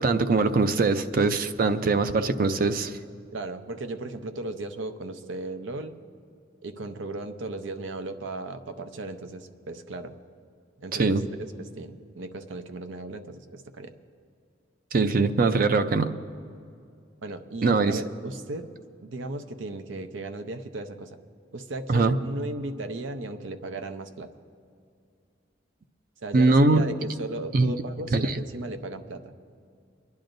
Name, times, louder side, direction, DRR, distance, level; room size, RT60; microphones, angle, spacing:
voice 1, 0.0-3.0 11.0-11.2 14.9-16.1 17.6-18.0 21.9-22.1 26.3-26.8 27.5-27.7 28.1-28.4, right 3 dB, 50° right, 10 dB, 0.5 m, -22 dB
voice 2, 3.3-6.0 6.6-10.2 10.8-13.9 17.2-18.7 19.0-21.2 21.5-24.3 26.2-29.3, right 2 dB, 85° right, 9 dB, 0.7 m, -36 dB
28.0 x 10.5 x 2.6 m, 2.4 s
head